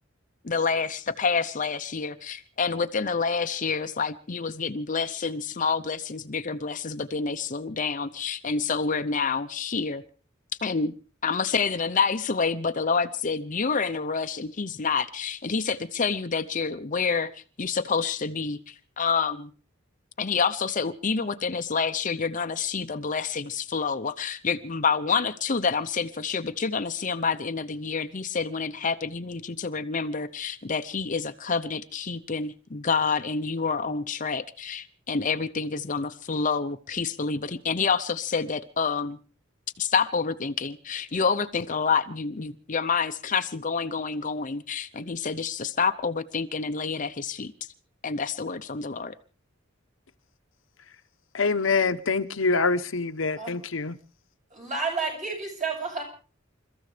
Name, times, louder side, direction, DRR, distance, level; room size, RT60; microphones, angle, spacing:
voice 1, 0.4-10.0 10.6-10.9 11.2-19.5 20.2-39.2 39.8-47.5 48.0-49.1, left 5 dB, 40° left, 0.7 m, -28 dB
voice 2, 51.3-54.0, left 4 dB, 75° left, 1.0 m, -25 dB
voice 3, 54.5-56.0, right 4 dB, 40° right, 7.8 m, -30 dB
29.0 x 14.0 x 3.4 m
head